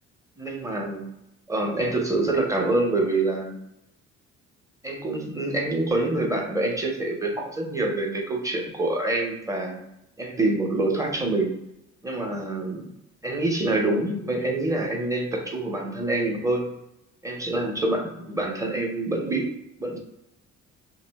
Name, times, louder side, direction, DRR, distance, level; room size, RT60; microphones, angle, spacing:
voice 1, 0.4-1.0 1.5-3.6 4.8-9.8 10.2-11.5 12.0-12.9 13.2-16.6 17.2-19.5 19.8-20.0, right 2 dB, 10° right, 0 dB, 0.6 m, -26 dB
2.5 x 2.1 x 3.3 m, 0.84 s
cardioid pair, 90°, 30 cm